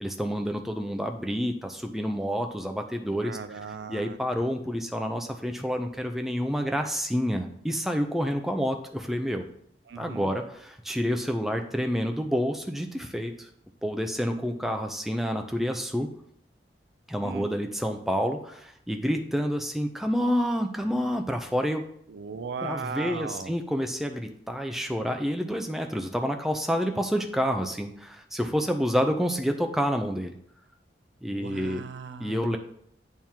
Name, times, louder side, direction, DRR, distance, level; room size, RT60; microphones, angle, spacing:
voice 1, 0.0-3.4 3.9-9.5 10.0-13.5 13.8-16.1 17.1-21.8 22.6-30.3 31.2-31.8 32.2-32.6, equal, ahead, 4 dB, 0.5 m, -28 dB
voice 2, 3.2-4.2 9.9-10.3 17.2-17.5 22.1-23.5 31.3-32.6, right 5 dB, 75° right, 11 dB, 0.5 m, -37 dB
8.8 x 3.6 x 4.5 m, 0.68 s
head